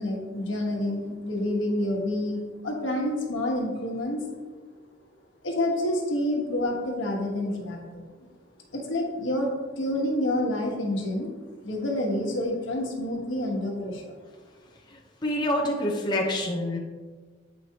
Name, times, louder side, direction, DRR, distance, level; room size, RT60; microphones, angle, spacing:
voice 1, 0.0-4.2 5.4-8.0 8.7-11.3 11.6-14.1, left 1 dB, 85° left, 0 dB, 1.3 m, -28 dB
voice 2, 14.9-16.8, left 1 dB, 25° left, -2 dB, 0.8 m, -27 dB
8.3 x 4.8 x 2.9 m, 1.4 s
head